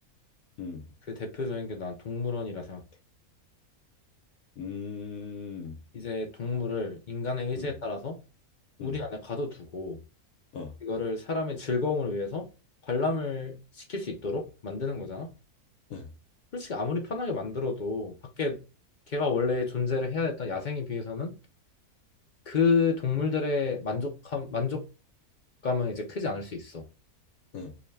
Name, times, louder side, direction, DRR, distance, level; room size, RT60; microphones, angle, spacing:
voice 1, 1.1-2.8 5.9-8.2 8.8-10.0 10.8-12.5 12.9-15.3 16.5-18.6 19.1-21.4 22.5-24.9 25.6-26.9, left 4 dB, 50° left, 0.5 m, -30 dB
voice 2, 4.6-5.8 7.5-7.7 8.8-9.0 10.5-10.7 15.9-16.1 27.5-27.7, left 5 dB, 70° left, 1.2 m, -38 dB
4.6 x 2.2 x 3.2 m
omnidirectional pair, 1.6 m